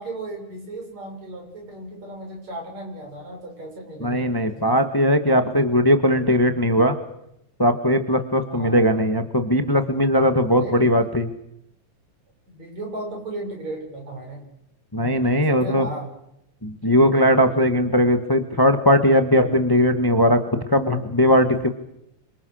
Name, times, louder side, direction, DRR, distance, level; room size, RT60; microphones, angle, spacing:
voice 1, 0.0-4.8 8.4-8.9 10.5-10.9 12.5-14.4 15.5-16.1, right 1 dB, 60° right, 1 dB, 8.3 m, -35 dB
voice 2, 4.0-7.0 7.6-11.3 14.9-15.9 16.6-20.4 20.7-21.7, equal, 10° left, 8 dB, 1.1 m, -19 dB
29.0 x 26.0 x 6.6 m, 0.80 s
omnidirectional pair, 3.4 m